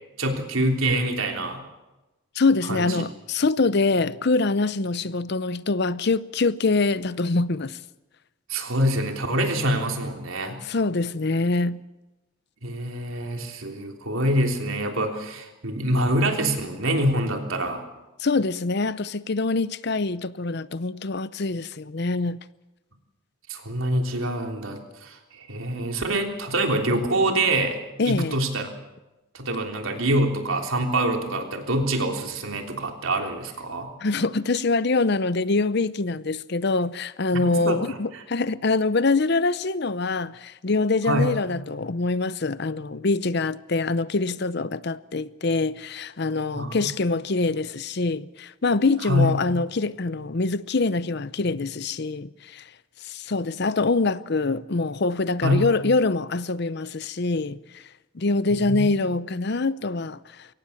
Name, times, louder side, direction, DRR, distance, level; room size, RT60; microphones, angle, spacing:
voice 1, 0.2-1.6 2.7-3.0 8.5-10.6 12.6-17.8 23.5-27.8 28.1-28.7 29.3-33.9 37.3-38.2 41.0-41.4 46.5-46.9 49.0-49.3 55.4-55.7 58.6-58.9, right 1 dB, 80° right, 3.3 m, -25 dB
voice 2, 2.4-7.8 10.6-11.8 18.2-22.4 28.0-28.3 34.0-52.6 53.0-57.8 58.1-60.5, left 3 dB, 55° left, 0.7 m, -24 dB
23.0 x 18.0 x 7.2 m
head